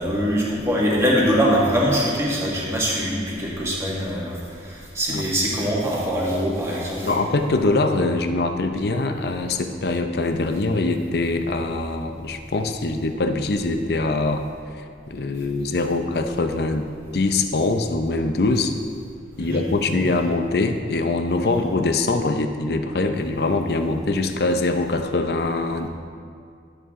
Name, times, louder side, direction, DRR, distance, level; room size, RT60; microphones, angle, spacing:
voice 1, 0.0-7.2 19.4-19.6, equal, 15° right, -5 dB, 1.7 m, -23 dB
voice 2, 7.1-14.4 15.1-16.9 17.1-18.7 19.4-25.9, left 2 dB, 60° left, 7 dB, 0.6 m, -23 dB
11.0 x 8.2 x 3.7 m, 2.3 s
head